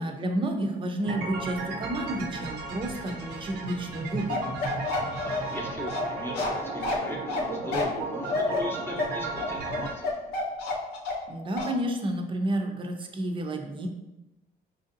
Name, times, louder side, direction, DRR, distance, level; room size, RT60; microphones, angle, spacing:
voice 1, 0.0-4.5 11.3-13.9, right 1 dB, 30° right, 3 dB, 0.5 m, -30 dB
sound 1, 1.0-9.9, right 3 dB, 80° right, 0.7 m, -35 dB
Bark, 4.3-11.3 11.6-11.8, left 3 dB, 85° left, 0.8 m, -30 dB
voice 2, 5.2-10.3, left 1 dB, 15° left, 0 dB, 0.7 m, -39 dB
5.0 x 2.7 x 2.5 m, 1.0 s
cardioid pair, 110°, 17 cm